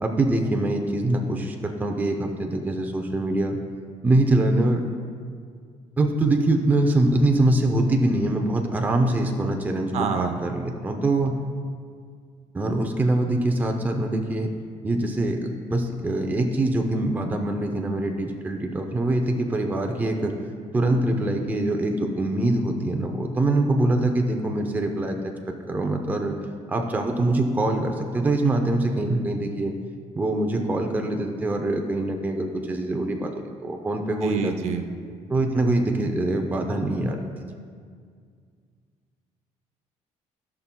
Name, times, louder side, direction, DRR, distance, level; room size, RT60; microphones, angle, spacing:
voice 1, 0.0-3.6 4.0-4.9 6.0-11.3 12.5-14.5 14.8-20.3 20.7-25.2 25.7-26.3 26.7-29.7 30.1-33.3 33.6-34.5 35.3-37.6, right 2 dB, 15° right, 3 dB, 0.6 m, -24 dB
voice 2, 9.9-10.4 34.2-34.9, right 6 dB, 60° right, 6 dB, 0.7 m, -26 dB
15.5 x 5.9 x 2.2 m, 2.1 s
cardioid pair, 140°, 12 cm